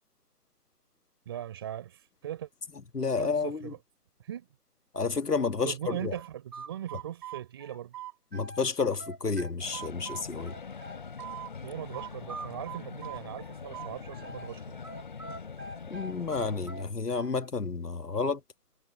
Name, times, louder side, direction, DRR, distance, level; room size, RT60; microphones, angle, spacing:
voice 1, 1.3-2.5 3.2-3.8 4.2-4.5 5.6-7.9 11.6-14.8, right 11 dB, 15° right, 3.8 m, -39 dB
voice 2, 2.9-3.7 4.9-6.1 8.3-10.6 15.9-18.4, left 4 dB, 90° left, 2.0 m, -30 dB
sound 1, 6.1-8.7 9.0-11.5 11.9-14.5 14.8-17.5, right 6 dB, 85° right, 3.0 m, -43 dB
sound 2, 9.6-16.9, left 5 dB, 30° left, 2.8 m, -43 dB
figure-of-eight pair, 170°, 46 cm